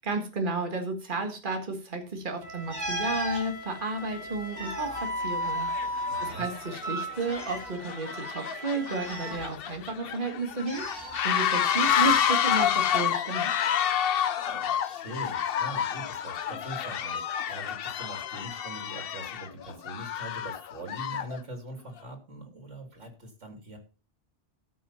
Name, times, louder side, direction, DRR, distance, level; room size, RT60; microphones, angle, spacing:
voice 1, 0.0-13.5, right 3 dB, 45° right, 4 dB, 2.0 m, -32 dB
Wind instrument woodwind instrument, 2.4-9.5, equal, 65° right, 3.8 m, -36 dB
sound 1, 2.7-3.4 4.3-6.0 6.3-6.4 7.2-7.7 8.9-9.9 10.7-11.2 12.5-12.7, right 1 dB, 15° right, 7.2 m, -36 dB
sound 2, 4.0-4.1 4.8-5.1 5.4-21.4, left 9 dB, 60° left, 0.8 m, -29 dB
voice 2, 6.1-6.4 14.4-23.8, right 1 dB, 85° right, 4 dB, 3.2 m, -42 dB
13.5 x 6.3 x 5.7 m, 0.35 s
omnidirectional pair, 1.2 m